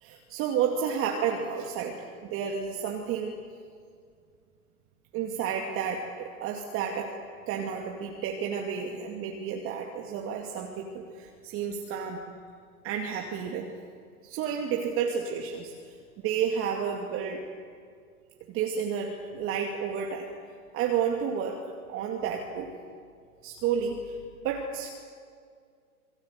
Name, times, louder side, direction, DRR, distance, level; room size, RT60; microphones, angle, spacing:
voice 1, 0.0-3.3 5.1-7.1 7.5-12.2 12.8-13.7 14.2-16.0 16.2-17.4 18.5-20.3 20.7-21.6 21.9-22.7 23.4-24.2 24.4-24.9, right 7 dB, 30° right, 1 dB, 2.3 m, -31 dB
27.0 x 20.5 x 8.1 m, 2.2 s
hypercardioid pair, 125°, 44 cm